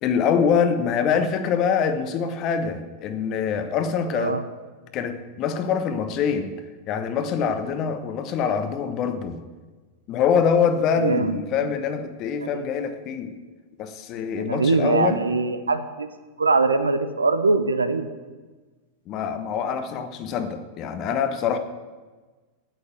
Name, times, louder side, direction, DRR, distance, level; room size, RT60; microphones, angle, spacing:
voice 1, 0.0-4.4 4.9-6.5 6.9-9.4 10.1-13.3 13.8-15.2 19.1-21.6, left 7 dB, 35° left, 9 dB, 1.2 m, -24 dB
voice 2, 4.1-4.4 11.0-11.4 12.5-12.7 14.5-16.1 16.4-18.1, right 3 dB, 75° right, 10 dB, 0.8 m, -22 dB
9.1 x 8.8 x 8.3 m, 1.3 s
figure-of-eight pair, 90°, 0 cm